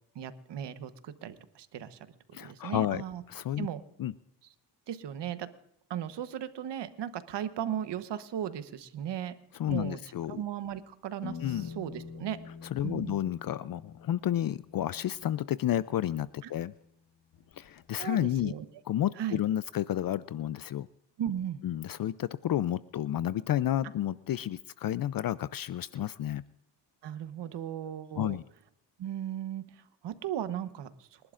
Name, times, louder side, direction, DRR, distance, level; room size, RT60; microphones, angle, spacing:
voice 1, 0.1-2.1 2.4-3.2 3.6-3.8 4.9-5.5 5.9-9.3 9.7-10.0 10.3-12.4 12.8-13.2 16.4-16.5 18.0-18.6 19.2-19.4 21.2-21.6 27.0-28.4 29.0-31.3, right 10 dB, 75° right, 12 dB, 1.1 m, -37 dB
voice 2, 2.3-3.7 4.0-4.1 9.6-10.4 11.4-11.7 12.7-16.7 17.6-18.5 18.9-20.9 21.6-26.4 28.2-28.4, left 11 dB, 55° left, 18 dB, 0.5 m, -31 dB
sound 1, 11.2-16.8 17.3-18.2, left 6 dB, 75° left, 1.3 m, -47 dB
28.5 x 11.5 x 2.5 m, 0.75 s
cardioid pair, 65°, 42 cm